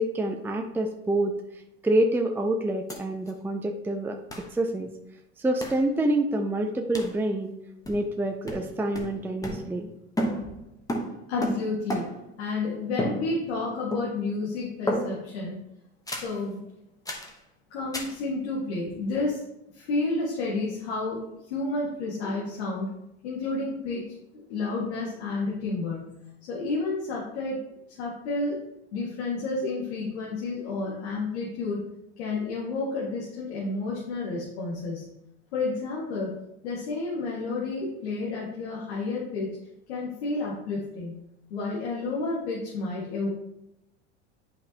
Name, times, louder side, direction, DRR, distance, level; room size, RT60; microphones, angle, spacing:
voice 1, 0.0-1.4 1.8-4.9 5.4-7.5 7.9-9.9, right 1 dB, 5° right, 3 dB, 0.5 m, -27 dB
sound 1, 2.9-3.0 3.3-3.4 4.3-4.5 5.6-5.9 6.9-7.2 7.9-8.2 8.5-9.9 10.2-12.3 13.0-13.6 13.9-14.4 14.9-15.4 16.1-16.4 17.1-17.4 17.9-18.2, equal, 10° left, 1.2 m, -33 dB
voice 2, 11.3-12.1 12.4-15.6 16.1-16.6 17.7-19.4 19.7-21.2 21.5-22.9 23.2-24.0 24.3-26.2 26.5-27.6 28.0-28.6 28.9-31.8 32.2-35.1 35.5-36.3 36.6-39.5 39.9-41.2 41.5-43.3, left 3 dB, 85° left, -5 dB, 1.9 m, -30 dB
8.9 x 5.2 x 2.9 m, 0.84 s
supercardioid pair, 100°, 32 cm